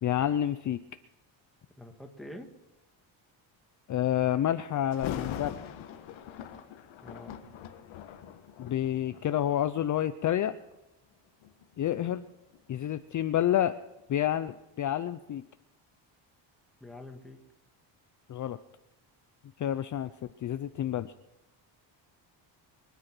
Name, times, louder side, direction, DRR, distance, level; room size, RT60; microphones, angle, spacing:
voice 1, 0.0-0.8 3.9-5.6 8.6-10.5 11.8-12.2 12.7-13.7 14.1-15.4 18.3-18.6 19.6-20.1 20.4-21.1, left 11 dB, 40° left, 11 dB, 0.6 m, -29 dB
voice 2, 1.8-2.5 7.0-7.4 16.8-17.4, left 1 dB, ahead, 3 dB, 1.8 m, -45 dB
Thunder, 4.9-9.9 10.5-10.8 11.4-14.2 14.6-14.7, left 10 dB, 90° left, 1.7 m, -42 dB
24.5 x 9.5 x 6.1 m, 0.95 s
cardioid pair, 140°, 45 cm